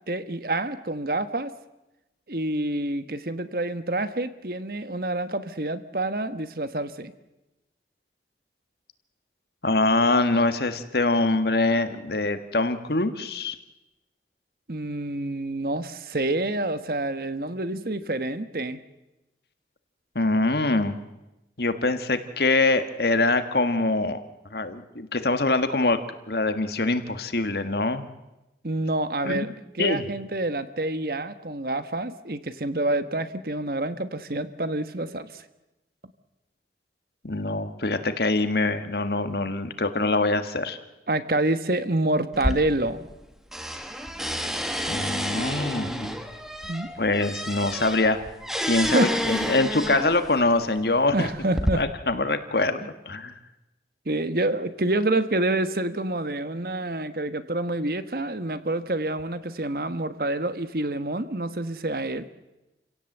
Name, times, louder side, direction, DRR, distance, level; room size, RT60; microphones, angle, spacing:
voice 1, 0.1-1.5 2.3-7.1 14.7-18.8 28.6-29.5 29.7-35.4 41.1-43.1 46.7-46.9 48.8-49.4 51.1-51.8 52.8-52.9 54.0-62.3, right 2 dB, 55° right, 12 dB, 1.2 m, -27 dB
voice 2, 9.6-13.6 20.1-21.0 21.6-24.2 24.5-26.0 26.3-28.1 29.2-29.5 29.8-30.1 37.2-40.8 44.9-46.2 47.0-48.2 48.7-51.3 51.7-53.3, left 2 dB, 65° left, 9 dB, 1.6 m, -24 dB
sound 1, 42.3-43.2 43.5-50.3 51.1-51.7, equal, 5° right, 1.4 m, -30 dB
28.5 x 17.0 x 7.9 m, 0.99 s
head